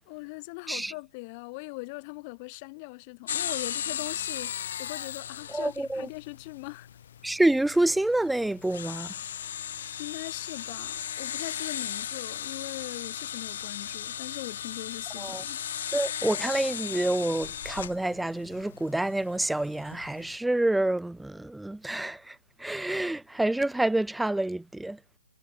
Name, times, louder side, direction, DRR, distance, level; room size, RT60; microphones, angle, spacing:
voice 1, 0.1-4.5 4.8-6.9 10.0-15.6, left 28 dB, 30° left, 2.3 m, -40 dB
sound 1, 3.3-20.4, left 9 dB, 50° left, 2.7 m, -37 dB
voice 2, 5.5-6.1 7.2-9.1 15.2-15.4 15.9-25.0, right 1 dB, ahead, 0.6 m, -28 dB
hypercardioid pair, 145°, 0 cm